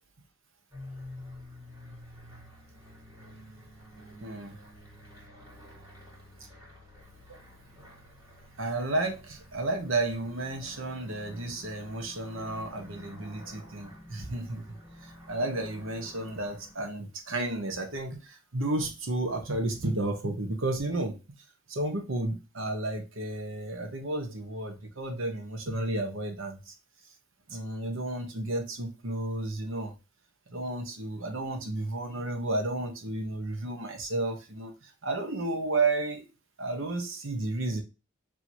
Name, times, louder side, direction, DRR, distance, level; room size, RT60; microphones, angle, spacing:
sound 1, 0.7-16.7, left 1 dB, 20° right, 1.8 m, -49 dB
voice 1, 4.2-4.6 8.6-14.6 15.0-21.2 21.7-26.7 27.5-29.9 30.5-36.2 36.6-37.8, right 2 dB, 75° right, 5 dB, 1.1 m, -32 dB
4.5 x 3.0 x 2.8 m, 0.28 s
head